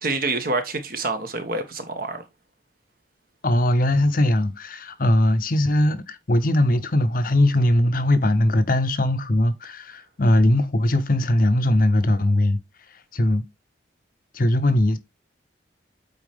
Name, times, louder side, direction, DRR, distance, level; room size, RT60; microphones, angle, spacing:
voice 1, 0.0-2.2, right 3 dB, 50° right, 1.3 m, -27 dB
voice 2, 3.4-12.6 13.1-13.4 14.3-15.0, left 1 dB, 45° left, 0.7 m, -20 dB
8.3 x 4.4 x 3.5 m
head